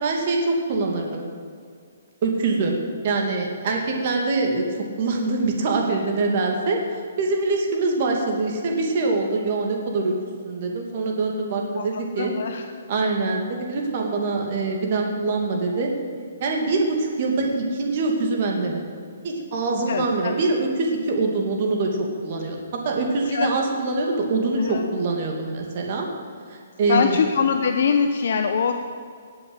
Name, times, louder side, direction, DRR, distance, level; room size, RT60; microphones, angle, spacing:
voice 1, 0.0-1.3 2.2-2.7 3.0-4.7 5.0-10.2 10.4-12.3 12.9-15.9 16.4-18.9 19.2-26.1 26.5-27.2, right 3 dB, 40° right, 1 dB, 2.4 m, -24 dB
voice 2, 11.8-12.7 19.9-20.3 23.3-23.5 24.6-24.8 26.9-28.7, left 6 dB, 55° left, 6 dB, 0.9 m, -23 dB
18.5 x 7.5 x 7.9 m, 2.2 s
hypercardioid pair, 170°, 0 cm